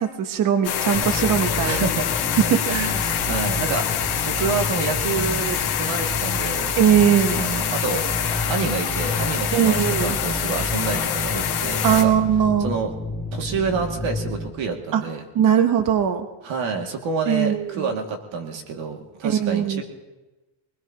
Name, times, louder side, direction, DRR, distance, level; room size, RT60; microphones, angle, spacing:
voice 1, 0.0-1.8 2.4-2.7 6.8-7.4 9.5-10.2 11.8-12.7 14.9-15.0 15.3-16.3 17.3-17.9 19.2-19.8, right 9 dB, 40° right, 8 dB, 1.0 m, -20 dB
sound 1, 0.6-12.0, left 9 dB, 50° left, 2.0 m, -26 dB
sound 2, 0.9-14.5, left 1 dB, ahead, 7.4 m, -30 dB
voice 2, 1.6-2.1 2.4-3.9 4.3-6.7 7.3-8.1 8.5-12.1 12.6-12.9 13.3-15.2 16.4-19.8, right 4 dB, 65° right, 3 dB, 2.3 m, -28 dB
23.5 x 20.5 x 2.9 m, 1.1 s
cardioid pair, 155°, 50 cm